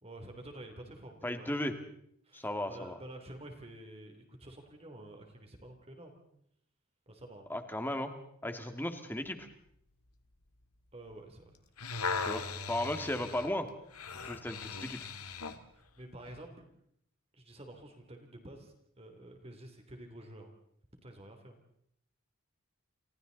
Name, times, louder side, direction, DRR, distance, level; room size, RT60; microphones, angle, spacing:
voice 1, 0.0-1.6 2.2-6.3 7.1-7.5 10.9-11.6 15.7-16.6 17.3-20.5 21.0-21.6, right 1 dB, 25° right, 4 dB, 3.1 m, -50 dB
voice 2, 1.2-1.7 2.3-3.0 7.5-8.1 8.4-9.5 12.2-13.7 14.2-15.1, left 1 dB, 10° left, 7 dB, 2.1 m, -35 dB
sound 1, 11.5-15.6 16.3-16.4, left 4 dB, 90° left, 2.0 m, -38 dB
30.0 x 28.0 x 4.0 m, 0.70 s
head